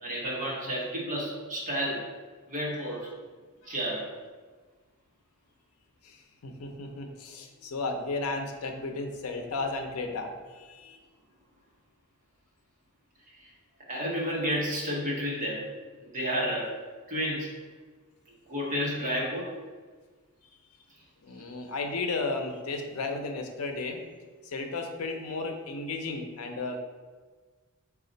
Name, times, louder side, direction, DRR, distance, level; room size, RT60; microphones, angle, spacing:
voice 1, 0.0-2.1 2.5-3.1 3.6-4.1 13.3-13.5 13.9-15.7 16.0-16.8 17.1-17.5 18.5-19.5, equal, 40° right, -4 dB, 1.0 m, -31 dB
voice 2, 6.0-11.0 21.2-24.0 24.4-26.8, left 3 dB, 90° left, 4 dB, 0.5 m, -34 dB
4.2 x 2.4 x 3.8 m, 1.4 s
head